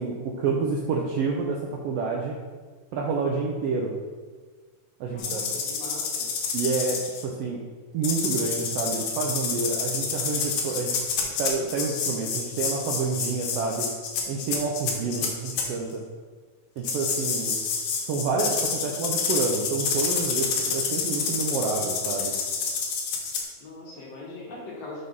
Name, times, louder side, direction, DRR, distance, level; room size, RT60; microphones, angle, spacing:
voice 1, 0.0-2.4 2.9-3.9 5.0-5.5 6.5-7.6 7.9-10.9 11.4-13.9 14.3-16.0 16.8-17.6 18.0-22.3, right 4 dB, 80° right, -1 dB, 1.4 m, -28 dB
voice 2, 5.1-6.3 15.0-15.3 23.6-25.0, left 2 dB, 65° left, -3 dB, 2.1 m, -41 dB
sound 1, 5.2-7.2 8.0-15.7 16.8-23.4, left 5 dB, 85° left, 2.3 m, -28 dB
6.0 x 3.2 x 5.3 m, 1.5 s
omnidirectional pair, 3.3 m